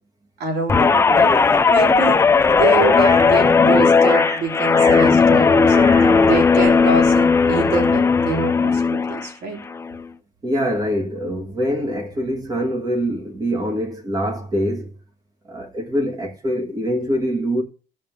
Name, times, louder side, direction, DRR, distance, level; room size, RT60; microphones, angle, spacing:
voice 1, 0.4-9.6, right 3 dB, 65° right, 3.3 m, -26 dB
Guitar, 0.7-9.3 9.7-10.0, left 5 dB, 15° left, 0.5 m, -16 dB
voice 2, 2.9-3.3 4.0-4.5 4.7-5.2 5.7-6.2 10.4-15.0 15.4-17.6, equal, 20° right, 1.5 m, -25 dB
15.0 x 5.5 x 6.1 m
cardioid pair, 175°, 18 cm